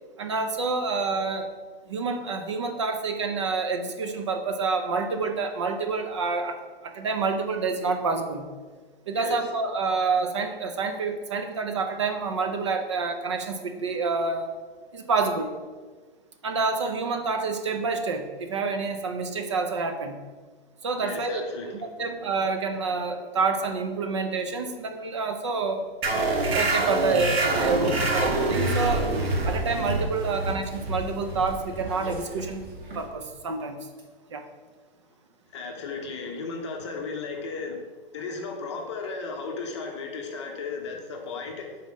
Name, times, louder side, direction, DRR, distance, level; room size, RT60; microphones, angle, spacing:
voice 1, 0.2-1.5 1.9-8.5 9.1-14.5 14.9-15.5 16.4-20.2 20.8-21.4 21.8-25.8 26.5-29.1 29.4-32.6 32.9-33.9 34.3-34.5, right 4 dB, 30° right, 6 dB, 0.5 m, -28 dB
voice 2, 21.0-22.1 35.5-37.8 38.1-41.8, left 4 dB, 30° left, 2 dB, 0.8 m, -35 dB
sound 1, 26.0-33.2, right 2 dB, 90° right, 1.4 m, -26 dB
sound 2, 28.8-33.2 34.0-34.1, right 2 dB, 60° right, 2.0 m, -43 dB
5.5 x 4.3 x 6.1 m, 1.4 s
hypercardioid pair, 175°, 30 cm